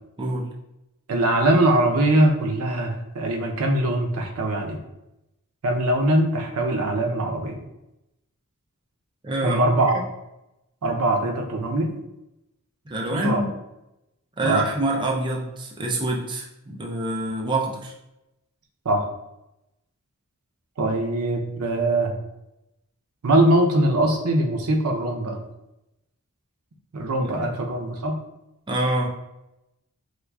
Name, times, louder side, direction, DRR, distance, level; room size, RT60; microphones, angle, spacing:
voice 1, 0.2-0.5 9.2-9.6 12.9-13.5 14.4-17.9 27.2-27.5 28.7-29.1, right 2 dB, 20° right, -1 dB, 0.4 m, -26 dB
voice 2, 1.1-4.8 5.6-7.6 9.4-10.0 10.8-11.9 13.1-13.4 14.4-14.6 18.9-19.0 20.8-22.1 23.2-25.4 26.9-28.2, right 1 dB, 85° right, 2 dB, 0.6 m, -22 dB
4.5 x 2.4 x 2.2 m, 0.90 s
head